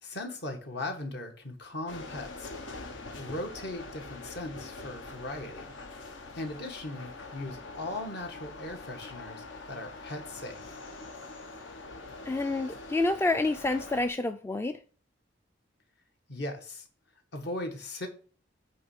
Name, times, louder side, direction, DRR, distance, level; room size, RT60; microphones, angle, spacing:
voice 1, 0.0-2.5 3.2-5.6 6.3-10.8 16.3-16.9 17.3-18.1, left 1 dB, 60° left, 1.5 m, -38 dB
sound 1, 1.9-14.1, left 3 dB, 75° left, 1.1 m, -44 dB
voice 2, 12.3-14.8, left 2 dB, 15° left, 0.3 m, -28 dB
8.5 x 3.1 x 6.4 m
head